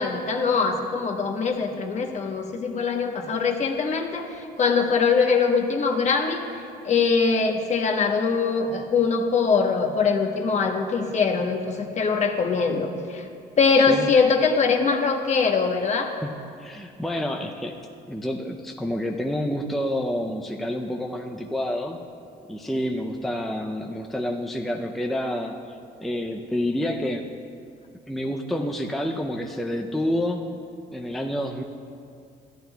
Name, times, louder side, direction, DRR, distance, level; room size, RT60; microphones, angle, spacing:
voice 1, 0.0-6.4 6.8-13.3 13.6-16.1, left 5 dB, 45° left, 3 dB, 1.0 m, -22 dB
voice 2, 13.8-14.1 16.2-17.8 18.1-22.0 22.5-27.3 28.1-30.5 30.9-31.6, left 1 dB, ahead, 2 dB, 0.5 m, -28 dB
14.0 x 10.5 x 2.3 m, 2.4 s
cardioid pair, 110°, 17 cm